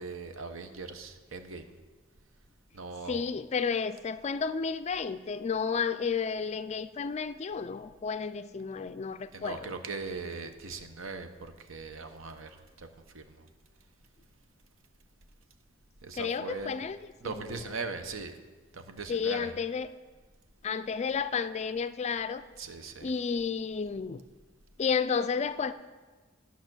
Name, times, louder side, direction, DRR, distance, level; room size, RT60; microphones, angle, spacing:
voice 1, 0.0-1.7 2.7-3.2 9.3-12.9 13.1-13.5 16.0-16.8 17.2-18.4 18.7-19.5 22.6-23.1, right 4 dB, 75° right, 8 dB, 0.8 m, -40 dB
voice 2, 3.1-9.7 16.1-17.0 17.2-17.6 19.1-19.9 20.6-22.4 23.0-24.2 24.8-25.7, left 5 dB, 35° left, 13 dB, 0.3 m, -32 dB
11.0 x 5.7 x 6.1 m, 1.3 s
head